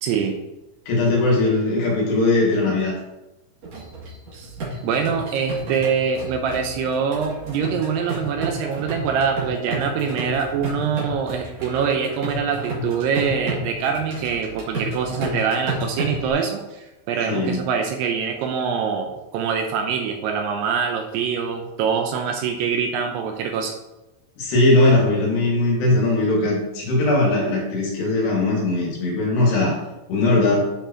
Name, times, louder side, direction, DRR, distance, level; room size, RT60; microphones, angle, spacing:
voice 1, 0.0-0.4 4.3-4.5 4.8-23.7, right 6 dB, 80° right, 4 dB, 2.6 m, -24 dB
voice 2, 0.9-2.9 17.3-17.6 24.4-29.8 30.1-30.6, left 2 dB, 70° left, -3 dB, 4.0 m, -19 dB
sound 1, 3.6-16.3, right 1 dB, 40° right, 3.0 m, -31 dB
9.2 x 6.8 x 2.9 m, 0.98 s
omnidirectional pair, 5.2 m